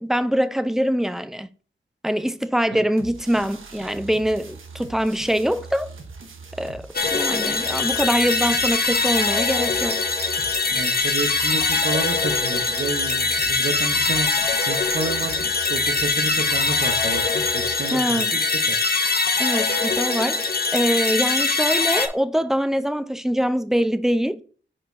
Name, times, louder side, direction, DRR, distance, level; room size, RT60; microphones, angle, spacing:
voice 1, 0.0-1.5 2.0-5.9 6.6-10.0 17.9-18.3 19.4-24.4, equal, ahead, 0.6 m, -23 dB
sound 1, 3.0-17.7, right 4 dB, 85° right, 1.1 m, -41 dB
sound 2, 7.0-22.1, left 4 dB, 50° left, 1.1 m, -22 dB
voice 2, 10.7-14.3 14.6-18.8, right 4 dB, 60° right, 1.2 m, -30 dB
5.0 x 4.4 x 4.6 m
cardioid pair, 50°, 20 cm